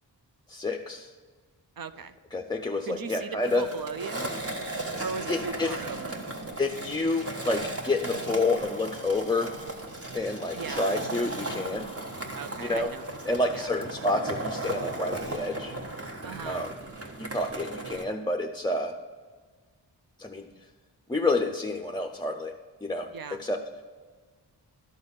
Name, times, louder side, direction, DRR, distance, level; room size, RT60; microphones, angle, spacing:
voice 1, 0.5-1.1 2.3-3.7 5.3-5.8 6.6-9.6 10.1-11.9 12.6-12.9 13.3-15.7 16.4-16.7 17.2-19.0 20.2-20.5 21.1-22.6 22.8-23.6, left 2 dB, 10° left, 2 dB, 0.4 m, -29 dB
voice 2, 1.8-2.2 2.9-4.3 5.0-6.3 10.5-10.8 12.3-13.7 16.2-16.6 23.1-23.4, right 6 dB, 55° right, 11 dB, 0.6 m, -38 dB
Skateboard, 3.4-18.0, right 2 dB, 35° right, 1.2 m, -36 dB
12.0 x 4.0 x 6.8 m, 1.5 s
wide cardioid pair, 65°, 43 cm